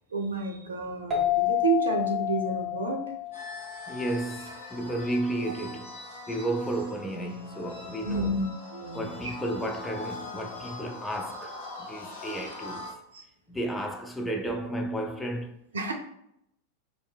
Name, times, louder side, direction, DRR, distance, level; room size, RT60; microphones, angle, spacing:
voice 1, 0.1-3.0 8.0-8.5 8.7-9.2 13.1-13.2 15.7-15.9, right 3 dB, 70° right, 0.5 m, -30 dB
sound 1, 1.1-4.4, left 13 dB, 20° right, 0.8 m, -29 dB
sound 2, 3.3-12.9, left 2 dB, 60° left, 0.7 m, -42 dB
voice 2, 3.9-5.9 6.3-8.4 8.9-11.5 11.9-12.9 13.5-15.6, right 1 dB, 10° left, 0.3 m, -32 dB
2.6 x 2.0 x 2.3 m
figure-of-eight pair, 90°, 0 cm